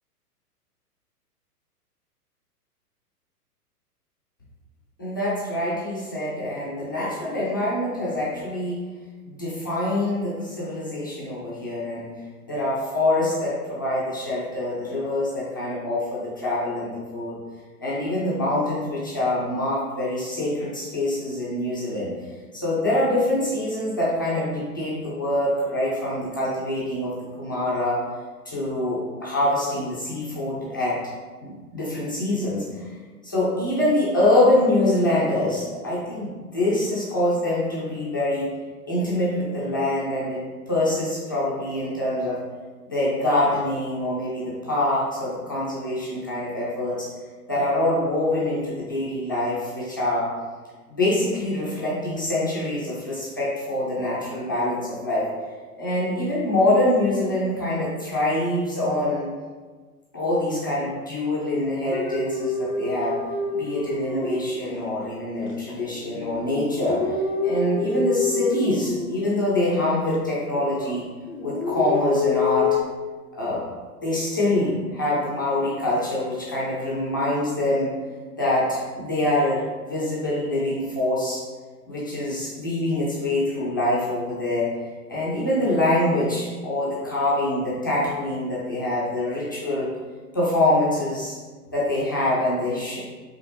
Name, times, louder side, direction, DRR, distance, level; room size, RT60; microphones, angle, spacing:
voice 1, 5.0-8.8 9.3-12.1 12.5-17.4 17.8-22.1 22.5-27.1 27.4-28.0 28.5-31.0 31.4-32.9 33.2-38.5 38.9-40.4 40.7-42.4 42.9-47.1 47.5-50.3 50.9-55.3 55.8-59.3 60.1-63.1 63.5-67.1 67.4-71.0 71.4-72.7 73.3-73.7 74.0-77.9 78.4-81.4 81.9-84.7 85.1-89.9 90.3-91.4 91.7-93.0, left 1 dB, 15° left, -8 dB, 0.3 m, -25 dB
sound 1, 61.9-64.8 65.4-69.6 70.0-71.0 71.3-72.8, left 4 dB, 75° left, 0.7 m, -27 dB
4.8 x 2.5 x 2.9 m, 1.4 s
figure-of-eight pair, 110°, 46 cm